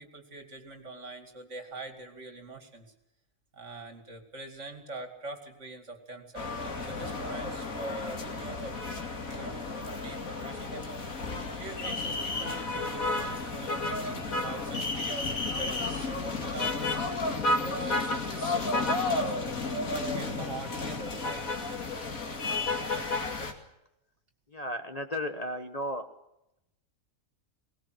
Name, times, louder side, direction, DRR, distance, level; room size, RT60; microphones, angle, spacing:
voice 1, 0.0-2.9 3.5-6.5 6.9-17.3 17.6-19.5 19.8-21.9, right 2 dB, 60° right, 6 dB, 2.9 m, -43 dB
sound 1, 6.3-23.5, left 3 dB, 80° left, 2.8 m, -32 dB
voice 2, 24.5-26.1, left 1 dB, 30° left, 6 dB, 1.2 m, -34 dB
20.0 x 19.0 x 7.8 m, 0.85 s
omnidirectional pair, 1.4 m